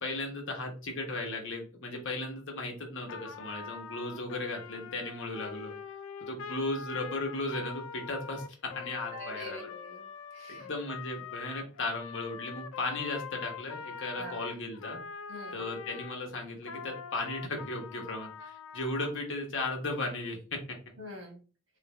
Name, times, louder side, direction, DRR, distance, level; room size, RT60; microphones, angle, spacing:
voice 1, 0.0-5.7 6.2-9.7 10.5-15.0 15.5-20.6, left 2 dB, 65° left, 2 dB, 1.0 m, -36 dB
Trumpet, 3.1-16.2 16.6-19.2, left 6 dB, 85° left, 0.3 m, -44 dB
voice 2, 9.1-10.7 14.1-14.4 15.3-15.6 21.0-21.4, equal, 80° right, 1 dB, 1.4 m, -44 dB
3.3 x 2.4 x 3.1 m, 0.37 s
head